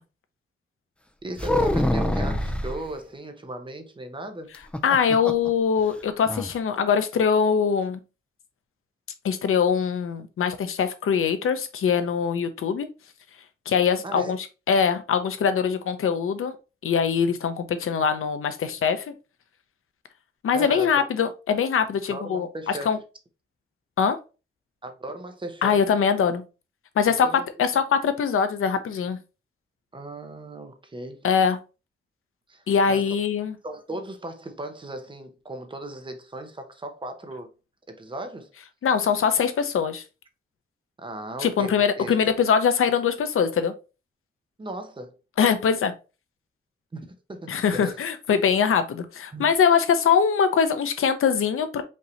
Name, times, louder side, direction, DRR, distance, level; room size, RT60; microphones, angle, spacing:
voice 1, 1.2-4.5 14.0-14.4 20.5-21.1 22.1-23.0 24.8-25.9 27.0-27.5 29.9-31.3 32.5-33.2 33.6-37.5 37.9-38.5 41.0-42.3 44.6-45.2 46.9-48.0 49.3-49.5, right 1 dB, 25° right, 0.7 m, -37 dB
sound 1, 1.4-2.8 4.5-5.5 5.8-5.9 6.3-6.5, left 1 dB, 5° left, 0.4 m, -25 dB
voice 2, 4.8-8.0 9.2-12.9 13.7-14.4 14.7-16.5 16.8-19.1 20.4-22.5 22.9-23.0 24.0-24.2 25.6-26.4 27.0-29.2 31.2-31.6 32.7-33.6 38.8-40.0 41.4-43.7 45.4-45.9 47.5-51.8, left 6 dB, 85° left, 0.7 m, -22 dB
5.3 x 2.8 x 3.1 m
wide cardioid pair, 150°, 21 cm